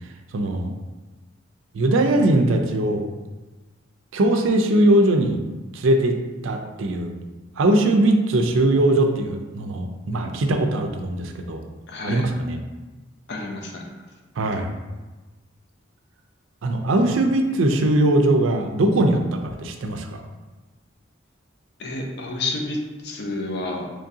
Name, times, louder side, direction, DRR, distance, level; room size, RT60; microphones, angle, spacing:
voice 1, 0.3-0.7 1.7-3.1 4.1-5.4 5.7-6.2 6.4-7.1 7.6-11.6 12.0-12.6 14.4-14.7 16.6-20.2, right 1 dB, 80° right, 5 dB, 0.4 m, -20 dB
voice 2, 11.9-12.2 13.3-13.9 21.8-22.8 23.0-23.9, left 2 dB, 60° left, 1 dB, 0.6 m, -30 dB
3.6 x 3.2 x 2.7 m, 1.2 s
head